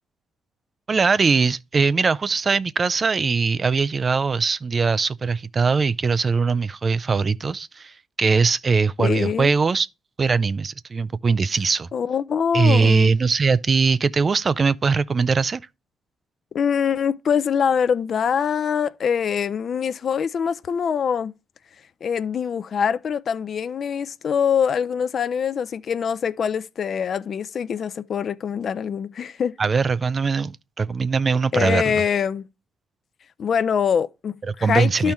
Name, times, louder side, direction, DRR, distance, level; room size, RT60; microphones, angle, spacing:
voice 1, 0.9-9.9 10.2-11.9 12.5-15.6 29.6-32.0 34.5-35.1, right 4 dB, 35° right, 0.3 m, -21 dB
voice 2, 9.0-9.5 11.9-13.1 16.5-21.3 22.0-29.5 31.5-32.4 33.4-35.1, left 7 dB, 55° left, 0.4 m, -24 dB
12.0 x 4.4 x 3.5 m
cardioid pair, 90°, 0 cm